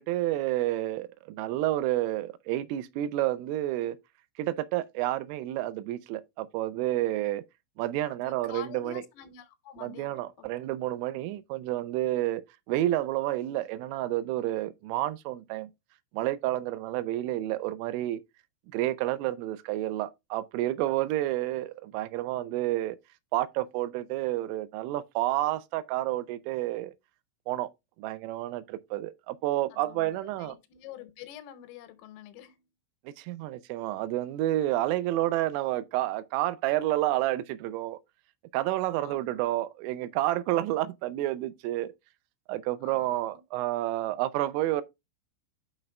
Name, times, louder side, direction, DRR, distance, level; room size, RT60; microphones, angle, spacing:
voice 1, 0.0-4.0 4.4-7.4 7.8-9.0 9.8-12.4 12.7-15.7 16.1-18.2 18.7-23.0 23.3-26.9 27.5-27.7 28.0-30.6 33.1-38.0 38.5-41.9 42.5-44.8, right 15 dB, 85° right, 3.1 m, -30 dB
voice 2, 8.2-10.5 29.7-32.6 39.0-39.4 42.8-43.4, left 11 dB, 85° left, 3.5 m, -47 dB
10.0 x 6.5 x 2.2 m
omnidirectional pair, 5.8 m